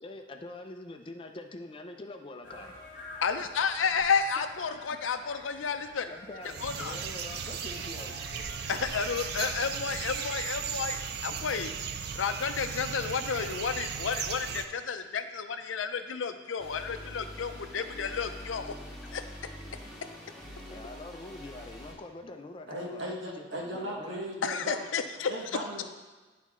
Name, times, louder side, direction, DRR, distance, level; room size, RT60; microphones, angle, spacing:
voice 1, 0.0-2.7 3.4-3.5 4.9-5.0 6.1-8.2 20.7-24.2, left 2 dB, 25° left, 5 dB, 0.4 m, -44 dB
sound 1, 2.4-9.7, left 2 dB, 45° left, 1.2 m, -48 dB
voice 2, 3.2-6.1 6.6-7.0 8.7-11.7 12.1-18.7 19.1-19.2 24.4-25.3, left 6 dB, 80° left, 9 dB, 0.5 m, -31 dB
sound 2, 6.4-14.7, right 7 dB, 55° right, 0.4 m, -36 dB
sound 3, 16.6-21.9, equal, ahead, 1.5 m, -45 dB
voice 3, 22.7-24.8 25.1-25.8, right 1 dB, 70° right, -2 dB, 1.4 m, -37 dB
10.0 x 4.2 x 3.6 m, 1.3 s
head